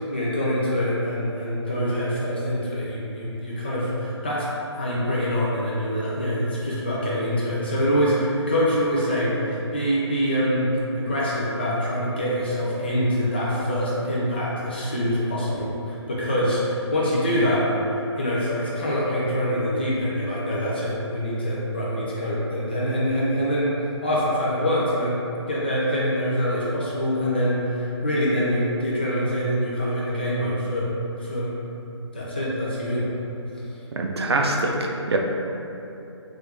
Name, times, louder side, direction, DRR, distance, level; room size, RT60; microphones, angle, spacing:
voice 1, 0.0-4.5 4.8-25.2 25.5-30.9 31.2-31.5 32.1-33.1, equal, 20° left, -6 dB, 0.4 m, -25 dB
voice 2, 34.0-35.2, right 2 dB, 60° right, 1 dB, 0.4 m, -24 dB
3.3 x 2.4 x 3.2 m, 2.8 s
figure-of-eight pair, 160°, 15 cm